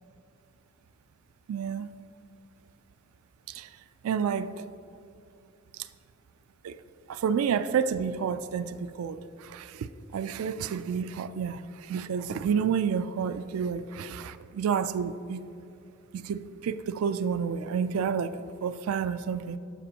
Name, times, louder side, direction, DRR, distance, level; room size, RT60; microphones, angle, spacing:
voice 1, 1.5-1.9 3.5-3.7 4.0-4.5 6.6-6.8 7.1-9.9 10.1-11.6 11.9-15.4 16.1-19.6, right 7 dB, 80° right, 13 dB, 0.3 m, -30 dB
12.0 x 5.0 x 2.8 m, 2.6 s
head